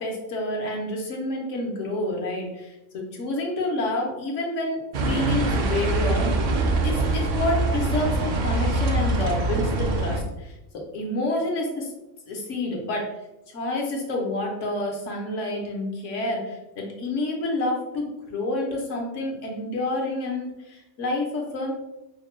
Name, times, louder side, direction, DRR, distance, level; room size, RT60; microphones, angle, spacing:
voice 1, 0.0-4.8 5.1-6.3 6.8-10.5 10.9-11.9 12.3-13.1 13.5-21.7, left 2 dB, 80° left, 0 dB, 1.2 m, -28 dB
sound 1, 4.9-10.2, right 2 dB, 60° right, 0.5 m, -24 dB
5.1 x 2.1 x 3.1 m, 0.95 s
omnidirectional pair, 1.3 m